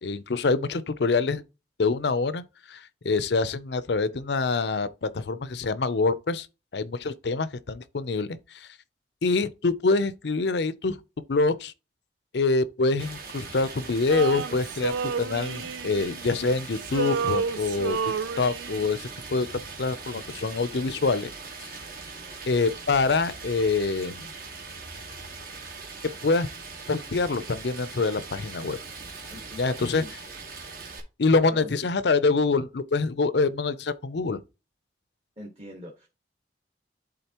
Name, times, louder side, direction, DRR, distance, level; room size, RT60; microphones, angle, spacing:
voice 1, 0.0-1.4 1.8-2.4 2.7-6.5 6.7-8.7 9.2-11.0 11.3-11.7 12.3-19.5 19.8-21.3 21.6-21.7 22.5-24.3 26.2-26.5 26.9-28.8 29.6-30.0 31.2-34.4, left 3 dB, 70° left, 0.6 m, -25 dB
Stream, 13.0-31.0, right 4 dB, 50° right, 1.6 m, -41 dB
Male singing, 14.1-16.5 16.8-19.0, right 5 dB, 90° right, 0.3 m, -30 dB
voice 2, 29.3-30.6 31.4-31.7 35.4-36.1, left 1 dB, 35° right, 1.5 m, -43 dB
11.5 x 3.8 x 2.9 m
head